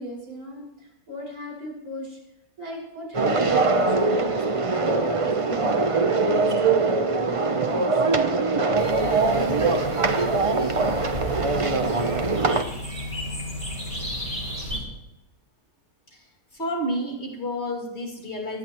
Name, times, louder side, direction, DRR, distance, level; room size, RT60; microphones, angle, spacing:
voice 1, 0.0-2.2 2.6-8.1, equal, 65° right, -4 dB, 5.9 m, -38 dB
sound 1, 3.1-12.6, right 3 dB, 45° right, 0.4 m, -22 dB
sound 2, 8.7-14.8, equal, 20° right, 4.2 m, -33 dB
voice 2, 16.5-18.6, equal, 40° left, 0 dB, 2.8 m, -30 dB
22.5 x 12.5 x 3.0 m, 0.89 s
omnidirectional pair, 1.7 m